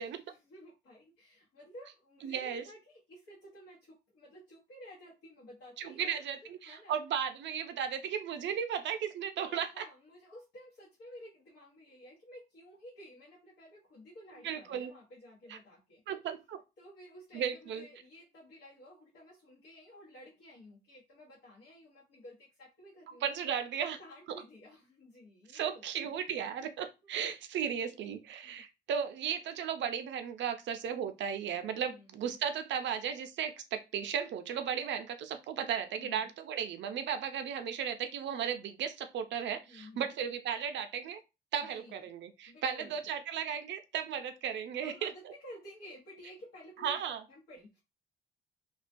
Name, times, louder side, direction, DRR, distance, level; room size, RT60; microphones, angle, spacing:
voice 1, 0.0-7.0 9.4-16.0 16.8-23.2 23.9-26.1 26.6-26.7 27.0-27.1 28.4-28.6 31.8-32.1 35.9-36.3 39.6-40.1 41.6-42.0 42.5-43.0 44.7-47.0 47.3-47.8, equal, 75° left, -6 dB, 0.9 m, -53 dB
voice 2, 2.2-2.6 5.8-9.8 14.4-14.9 15.5-15.6 16.1-16.6 17.3-17.8 23.2-24.0 24.3-24.4 25.5-41.2 41.5-45.1 46.8-47.2, right 8 dB, 65° right, 9 dB, 0.5 m, -35 dB
2.3 x 2.2 x 2.5 m, 0.26 s
cardioid pair, 90°, 20 cm